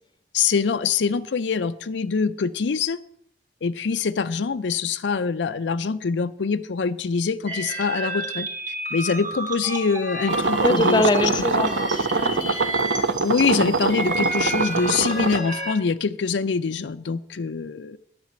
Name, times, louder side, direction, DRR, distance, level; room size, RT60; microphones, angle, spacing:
voice 1, 0.3-3.0 3.6-8.5 8.9-11.3 11.6-11.7 13.2-18.0, left 5 dB, 80° left, 10 dB, 0.5 m, -24 dB
sound 1, 7.5-15.7, right 1 dB, 45° right, 1.9 m, -31 dB
sound 2, 10.3-15.4, right 3 dB, 85° right, 0.9 m, -24 dB
voice 2, 10.6-12.6, left 2 dB, 25° left, 11 dB, 0.8 m, -24 dB
10.5 x 6.0 x 8.6 m, 0.70 s
head